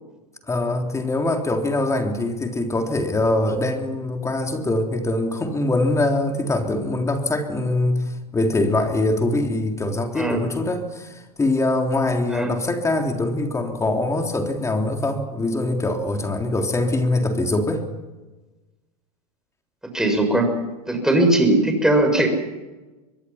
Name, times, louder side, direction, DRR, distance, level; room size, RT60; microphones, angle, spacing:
voice 1, 0.5-17.9, left 2 dB, 15° left, 3 dB, 3.6 m, -23 dB
voice 2, 19.9-20.4 20.9-22.3, right 1 dB, 5° right, 4 dB, 6.8 m, -19 dB
25.0 x 21.5 x 5.9 m, 1.2 s
hypercardioid pair, 100°, 20 cm